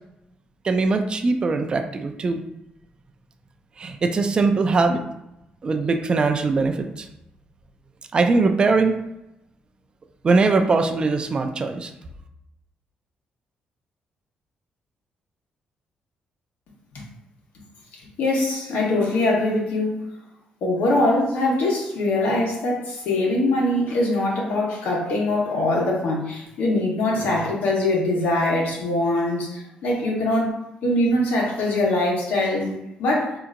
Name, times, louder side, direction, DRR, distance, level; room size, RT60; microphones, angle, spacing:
voice 1, 0.6-2.4 3.8-5.0 5.6-7.1 8.1-9.0 10.2-11.9, right 3 dB, 30° right, 5 dB, 0.4 m, -21 dB
voice 2, 18.2-20.0 20.6-30.5 30.8-32.7 33.0-33.3, left 2 dB, 85° left, -2 dB, 1.1 m, -22 dB
4.3 x 2.8 x 2.5 m, 0.86 s
cardioid pair, 115°, 3 cm